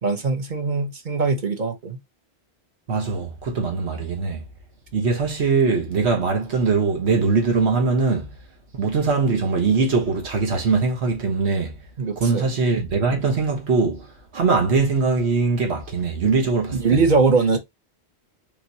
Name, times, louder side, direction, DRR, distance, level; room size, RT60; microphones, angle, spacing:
voice 1, 0.0-2.0 12.0-12.5 16.7-17.6, right 4 dB, 50° right, 1.1 m, -21 dB
voice 2, 2.9-4.4 4.9-8.3 8.7-11.8 12.2-17.0, right 4 dB, 85° right, 1.5 m, -21 dB
3.6 x 3.1 x 4.0 m
omnidirectional pair, 1.1 m